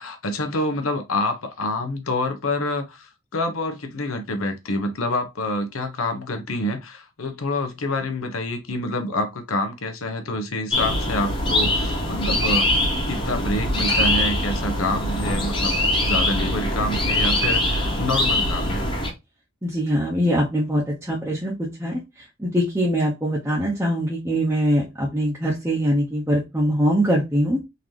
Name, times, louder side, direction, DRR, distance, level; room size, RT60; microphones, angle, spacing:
voice 1, 0.0-18.9, left 2 dB, 85° left, 0.8 m, -27 dB
sound 1, 10.7-19.1, left 1 dB, 25° left, 1.1 m, -22 dB
sound 2, 13.9-15.7, equal, 75° right, 1.4 m, -36 dB
voice 2, 19.6-21.5 21.8-22.0 22.4-27.6, equal, 10° right, 0.7 m, -22 dB
4.0 x 2.7 x 3.1 m
head